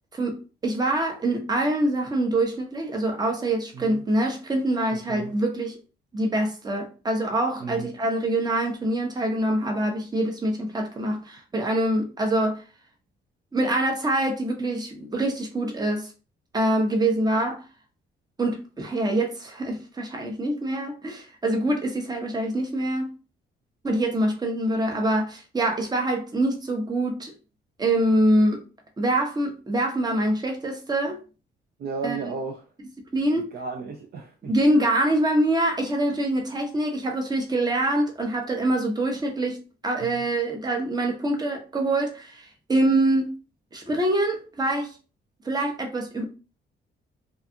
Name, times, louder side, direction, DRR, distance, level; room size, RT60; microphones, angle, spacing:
voice 1, 0.1-5.8 6.1-12.6 13.5-16.1 16.5-17.6 18.4-23.1 23.8-27.3 27.8-28.6 29.0-31.2 32.0-32.3 33.1-33.4 34.4-43.3 43.7-45.0 45.4-46.2, right 1 dB, 20° right, 0.7 m, -25 dB
voice 2, 7.6-7.9 31.8-32.7 33.5-34.5 40.0-40.2, right 4 dB, 55° right, 0.4 m, -34 dB
2.4 x 2.4 x 2.6 m
cardioid pair, 90°, 20 cm